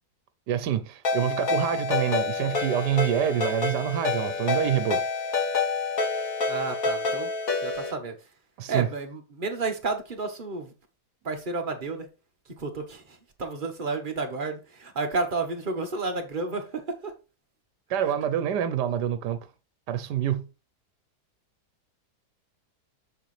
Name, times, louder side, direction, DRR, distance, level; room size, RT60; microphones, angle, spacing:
voice 1, 0.5-5.0 8.6-8.9 17.9-19.4 19.9-20.5, right 10 dB, 85° right, 1.4 m, -26 dB
Ringtone, 1.0-7.9, left 4 dB, 60° left, 2.5 m, -28 dB
voice 2, 6.5-7.3 7.6-8.1 8.7-10.7 11.2-12.1 12.6-17.1, right 3 dB, 30° right, 1.4 m, -31 dB
7.2 x 6.5 x 3.2 m
omnidirectional pair, 1.8 m